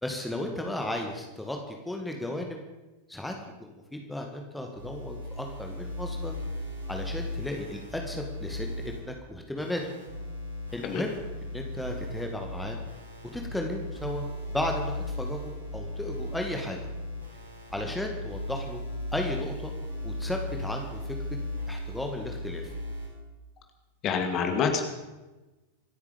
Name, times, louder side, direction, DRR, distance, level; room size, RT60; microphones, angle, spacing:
voice 1, 0.0-2.6 3.1-3.3 3.6-6.4 6.9-9.8 10.7-12.8 13.3-16.9 17.7-18.8 19.1-19.7 20.0-21.2 21.7-22.7, left 1 dB, 5° left, 2 dB, 2.1 m, -35 dB
sound 1, 4.7-9.0 9.6-23.1, left 1 dB, 80° right, 4.3 m, -37 dB
voice 2, 24.0-24.8, left 6 dB, 35° left, 5 dB, 2.5 m, -26 dB
26.0 x 9.6 x 5.3 m, 1.1 s
figure-of-eight pair, 90°, 0 cm